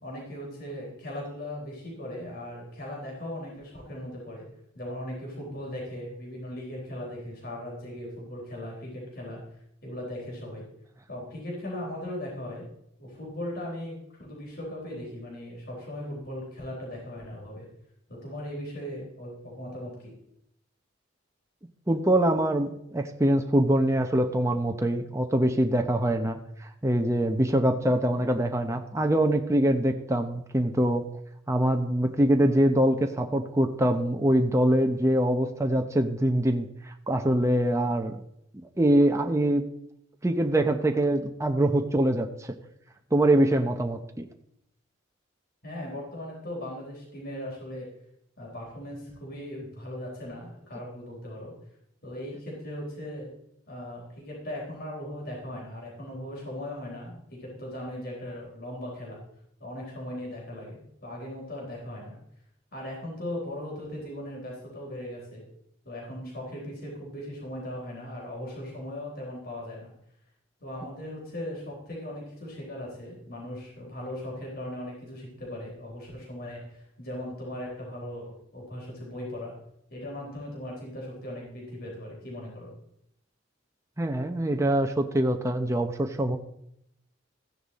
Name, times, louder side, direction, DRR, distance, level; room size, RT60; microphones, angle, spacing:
voice 1, 0.0-4.5 4.7-9.4 9.8-10.6 11.1-12.6 13.0-17.7 18.1-20.1 45.6-47.9 48.4-51.5 52.0-53.3 53.7-59.2 59.6-62.2 62.7-65.4 65.8-69.9 70.6-79.5 79.9-82.7, left 1 dB, 50° left, -3 dB, 3.9 m, -38 dB
voice 2, 21.9-31.1 31.5-38.2 38.5-39.6 40.2-42.6 43.1-44.3 84.0-86.4, right 1 dB, 15° right, 4 dB, 0.8 m, -24 dB
14.5 x 10.0 x 4.2 m, 0.77 s
head